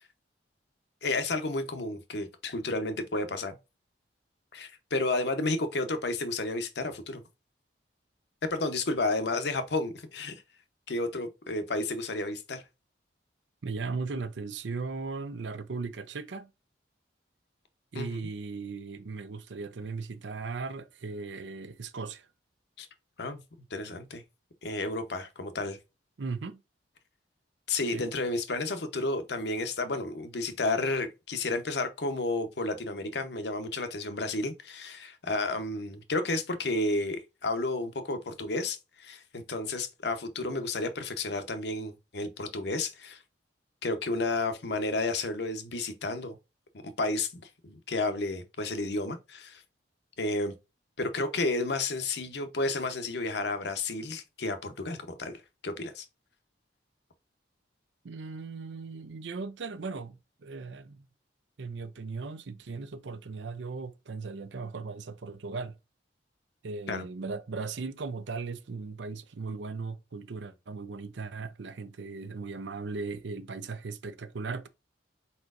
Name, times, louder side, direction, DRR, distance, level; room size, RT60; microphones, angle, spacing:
voice 1, 1.0-3.6 4.5-7.2 8.5-10.4 10.9-12.6 17.9-18.3 22.8-22.9 23.2-23.4 23.7-24.2 24.6-25.8 27.7-43.2 43.8-46.4 47.0-49.6 50.2-50.5 51.0-55.4 55.6-56.1 66.9-67.0, left 2 dB, 65° left, 0.9 m, -31 dB
voice 2, 13.6-16.5 17.9-22.3 26.2-26.6 27.9-28.1 58.0-61.1 61.6-65.8 66.6-74.7, right 4 dB, 75° right, 0.5 m, -37 dB
4.5 x 4.2 x 2.5 m
head